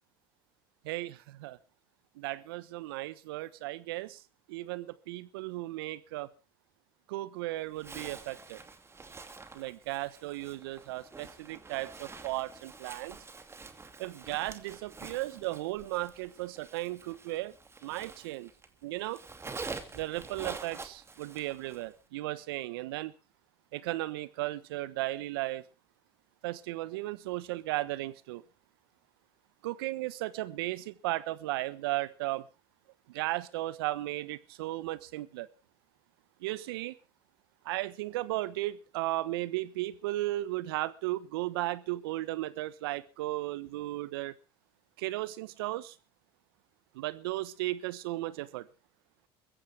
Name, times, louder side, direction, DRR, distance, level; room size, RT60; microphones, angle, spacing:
voice 1, 0.8-1.6 2.1-4.2 4.5-6.3 7.1-8.6 9.5-13.2 14.0-17.5 17.8-18.5 18.8-19.2 19.9-23.1 23.7-25.7 26.4-28.4 29.6-32.5 33.1-35.5 36.4-37.0 37.6-44.3 45.0-46.0 46.9-48.7, right 17 dB, 75° right, 18 dB, 1.2 m, -35 dB
Zipper (clothing), 7.8-18.7 19.0-21.9, right 4 dB, 20° right, 2.6 m, -47 dB
22.0 x 15.5 x 3.5 m, 0.33 s
hypercardioid pair, 80°, 12 cm